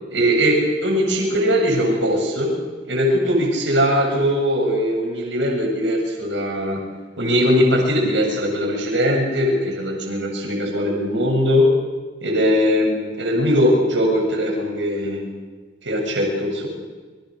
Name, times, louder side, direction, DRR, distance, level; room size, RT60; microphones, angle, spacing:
voice 1, 0.1-2.5 2.9-6.8 7.2-11.7 12.2-15.2 15.8-16.7, equal, 75° right, 1 dB, 7.3 m, -20 dB
29.0 x 25.5 x 6.7 m, 1.4 s
head